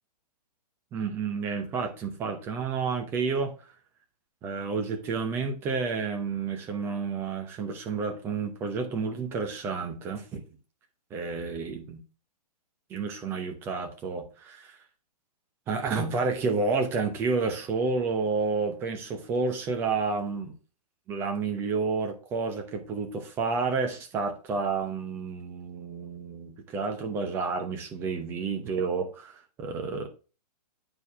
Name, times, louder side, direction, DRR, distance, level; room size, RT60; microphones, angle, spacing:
voice 1, 0.9-3.5 4.4-10.4 11.1-12.0 12.9-14.8 15.7-20.6 21.1-30.1, right 4 dB, 10° right, 4 dB, 0.8 m, -30 dB
8.7 x 4.7 x 3.5 m, 0.34 s
hypercardioid pair, 170°, 21 cm